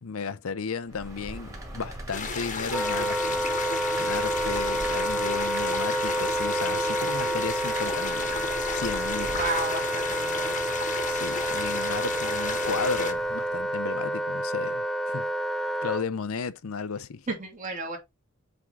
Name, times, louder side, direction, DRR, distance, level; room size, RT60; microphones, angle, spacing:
voice 1, 0.0-3.5 4.0-9.4 11.1-15.3 15.8-17.2, left 5 dB, 75° left, 0.6 m, -34 dB
sound 1, 0.8-13.8, right 1 dB, 15° right, 2.2 m, -42 dB
sound 2, 2.1-13.1, left 5 dB, 35° left, 1.1 m, -33 dB
Wind instrument woodwind instrument, 2.7-16.1, right 1 dB, ahead, 0.4 m, -29 dB
voice 2, 9.3-10.6 17.3-18.0, right 2 dB, 35° right, 2.3 m, -32 dB
7.7 x 3.8 x 3.5 m
head